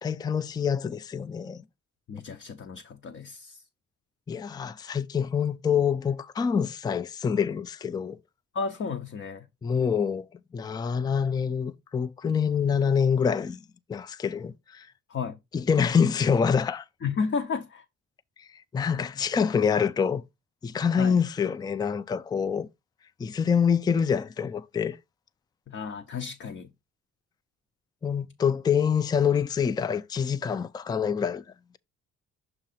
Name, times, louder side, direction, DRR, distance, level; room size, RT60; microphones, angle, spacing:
voice 1, 0.0-1.6 4.3-8.2 9.6-10.3 10.5-13.6 13.9-14.9 15.5-16.9 18.4-20.2 20.6-22.7 23.2-25.0 28.0-31.4, left 7 dB, 15° left, 0.3 m, -26 dB
voice 2, 2.1-3.6 8.5-9.5 15.1-15.4 17.0-17.8 21.0-21.2 25.7-26.7, left 5 dB, 40° left, 0.7 m, -32 dB
6.6 x 2.9 x 5.6 m
cardioid pair, 90°, 30 cm